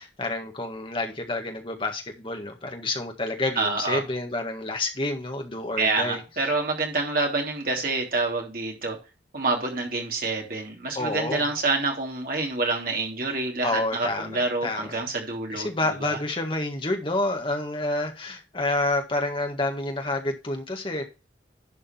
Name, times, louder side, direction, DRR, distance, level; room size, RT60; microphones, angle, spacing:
voice 1, 0.0-6.5 11.0-11.5 13.6-14.9 15.5-21.0, left 2 dB, 25° left, 1.7 m, -29 dB
voice 2, 3.6-4.0 5.8-9.0 9.3-15.7 16.0-16.2, right 3 dB, 50° right, 3.0 m, -27 dB
11.5 x 5.0 x 4.4 m
head